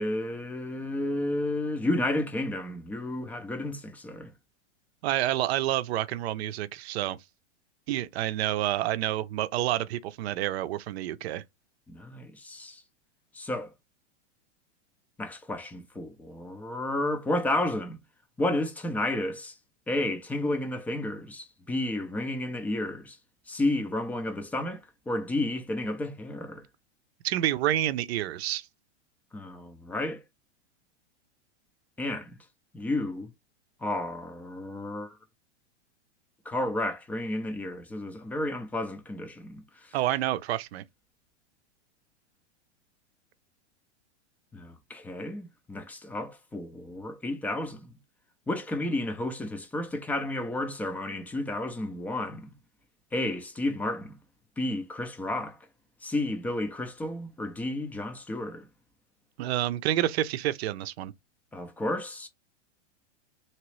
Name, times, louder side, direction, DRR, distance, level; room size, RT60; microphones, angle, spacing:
voice 1, 0.0-4.3 11.9-12.8 13.3-13.7 15.2-18.0 18.4-19.5 19.9-23.2 23.5-24.8 25.1-26.6 29.3-30.2 32.0-32.4 32.7-33.3 33.8-35.2 36.5-39.9 44.5-47.9 48.5-52.5 53.1-54.1 54.6-55.6 56.0-58.7 61.5-62.3, left 1 dB, 5° left, 0.4 m, -32 dB
voice 2, 5.0-7.2 7.9-11.4 27.2-28.7 39.9-40.8 59.4-61.1, right 13 dB, 65° right, 0.6 m, -28 dB
2.9 x 2.9 x 3.0 m
hypercardioid pair, 130°, 35 cm